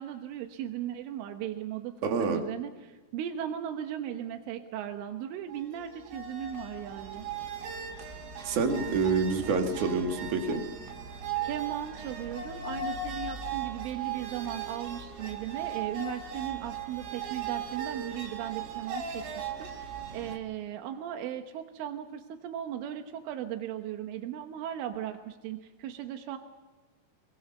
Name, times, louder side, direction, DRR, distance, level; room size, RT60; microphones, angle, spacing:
voice 1, 0.0-7.3 11.4-26.4, right 10 dB, 90° right, 5 dB, 3.7 m, -37 dB
voice 2, 2.0-2.4 8.4-10.6, right 4 dB, 50° right, 3 dB, 3.1 m, -27 dB
sound 1, 5.5-20.4, right 6 dB, 70° right, 4.3 m, -38 dB
27.0 x 22.0 x 5.6 m, 1.2 s
omnidirectional pair, 5.5 m